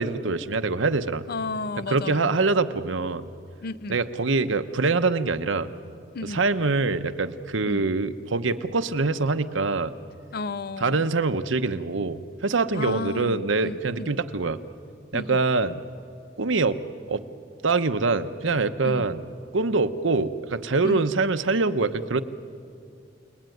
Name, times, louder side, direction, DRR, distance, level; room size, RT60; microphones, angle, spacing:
voice 1, 0.0-1.2 1.9-3.3 3.9-5.7 6.2-9.9 10.8-14.6 15.1-15.8 16.4-16.8 17.1-17.2 17.6-19.2 19.5-22.2, right 3 dB, 80° right, 10 dB, 1.0 m, -24 dB
voice 2, 1.3-2.5 3.6-4.0 6.1-6.4 7.7-7.8 10.3-11.1 12.7-14.1 15.1-15.4 18.8-19.1 20.8-21.1, left 3 dB, 55° left, 16 dB, 0.6 m, -33 dB
29.5 x 20.0 x 9.3 m, 2.5 s
head